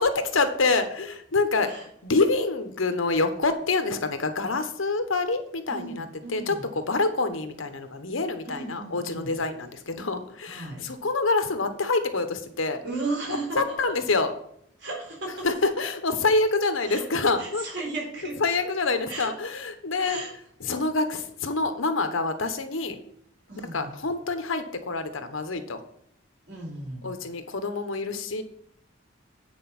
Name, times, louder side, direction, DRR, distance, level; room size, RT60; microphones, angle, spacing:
voice 1, 0.0-1.7 2.0-12.8 13.5-14.3 15.4-17.6 18.4-20.2 20.6-23.0 23.7-25.8 27.0-28.4, left 3 dB, 85° left, 8 dB, 1.1 m, -26 dB
voice 2, 5.7-6.7 8.4-9.4 10.5-10.8 12.8-14.0 14.8-15.5 16.8-17.1 17.4-18.4 19.1-19.3 19.9-20.3 23.5-23.9 26.5-27.1, right 3 dB, 60° right, -3 dB, 4.3 m, -35 dB
9.1 x 4.7 x 6.0 m, 0.69 s
head